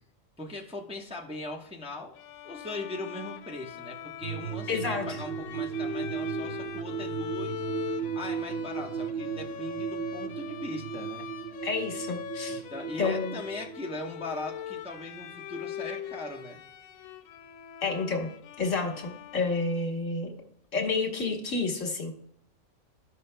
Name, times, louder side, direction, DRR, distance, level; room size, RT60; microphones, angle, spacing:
voice 1, 0.4-2.1 2.4-7.6 8.1-11.2 12.5-16.6, left 2 dB, 5° right, -2 dB, 0.8 m, -39 dB
Bowed string instrument, 2.1-20.0, left 10 dB, 90° left, 1.0 m, -41 dB
sound 1, 4.2-15.0 15.3-15.4, right 7 dB, 60° right, 0.7 m, -36 dB
voice 2, 4.7-5.0 11.6-12.6 13.0-13.4 17.8-18.3 18.6-20.3 20.7-22.1, left 4 dB, 70° left, 1 dB, 1.7 m, -29 dB
14.5 x 5.5 x 2.2 m, 0.68 s
omnidirectional pair, 1.4 m